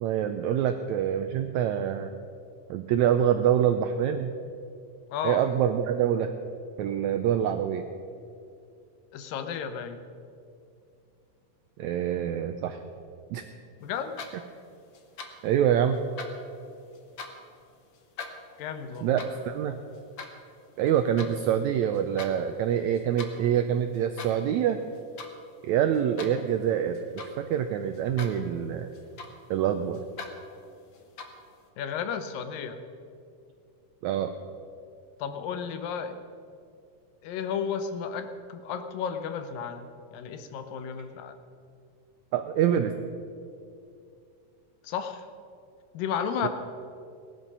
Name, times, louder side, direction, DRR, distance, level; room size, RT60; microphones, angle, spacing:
voice 1, 0.0-2.1 2.7-4.3 5.2-6.3 6.8-7.8 11.8-12.8 13.3-13.4 15.4-16.0 19.0-19.2 19.4-19.8 20.8-24.8 25.6-28.9 29.5-30.0 34.0-34.3 42.3-42.9 46.4-46.5, right 9 dB, 85° right, 8 dB, 1.6 m, -25 dB
voice 2, 5.1-5.4 9.1-10.0 13.8-14.1 18.6-19.2 31.8-32.8 35.2-36.1 37.2-41.4 44.8-45.3 45.9-46.5, left 7 dB, 85° left, 8 dB, 2.6 m, -33 dB
sound 1, 13.9-14.6 14.9-15.5 15.9-17.5 17.9-21.3 21.8-22.3 22.7-23.4 23.9-24.5 24.8-25.4 25.7-27.5 27.9-28.5 28.8-29.6 29.9-30.4 30.9-31.5, left 4 dB, 65° left, 1.2 m, -42 dB
18.0 x 11.5 x 5.4 m, 2.5 s
omnidirectional pair, 3.9 m